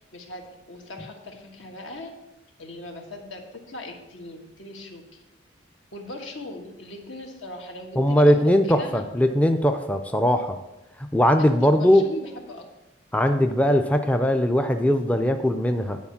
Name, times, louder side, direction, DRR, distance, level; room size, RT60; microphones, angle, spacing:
voice 1, 0.0-2.1 2.6-5.2 5.9-9.4 11.3-12.7, left 2 dB, 80° left, 2 dB, 1.5 m, -39 dB
voice 2, 8.0-10.6 11.1-12.0 13.1-16.0, equal, 5° left, 6 dB, 0.4 m, -20 dB
9.5 x 4.4 x 7.1 m, 0.97 s
head